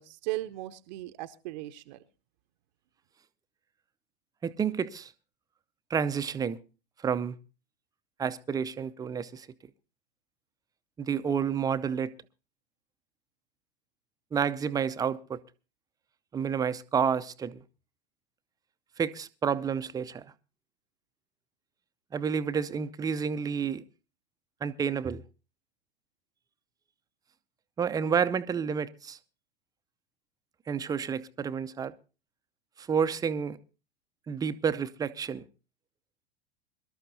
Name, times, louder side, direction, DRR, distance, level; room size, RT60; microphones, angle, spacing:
voice 1, 0.0-2.0, right 17 dB, 50° right, 0.8 m, -37 dB
voice 2, 4.4-5.1 5.9-6.6 7.0-7.3 8.2-9.5 11.0-12.1 14.3-15.4 16.3-17.6 19.0-20.2 22.1-23.8 24.6-25.2 27.8-29.2 30.7-31.9 32.8-33.6 34.3-35.4, right 7 dB, 10° right, 0.6 m, -30 dB
23.0 x 12.5 x 2.7 m
figure-of-eight pair, 90°, 30 cm